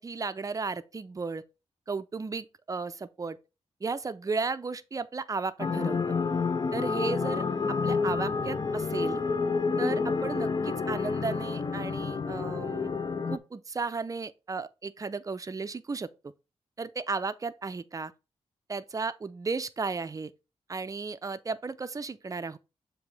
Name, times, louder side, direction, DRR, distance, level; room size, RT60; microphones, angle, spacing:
voice 1, 0.0-1.4 1.9-3.4 3.8-6.0 6.7-9.2 9.8-12.9 13.3-16.1 16.8-18.1 18.7-20.3 20.7-22.6, right 4 dB, 30° right, 0.5 m, -34 dB
sound 1, 5.6-13.4, left 4 dB, 35° left, 0.5 m, -29 dB
7.2 x 2.8 x 4.7 m
wide cardioid pair, 105°, 12 cm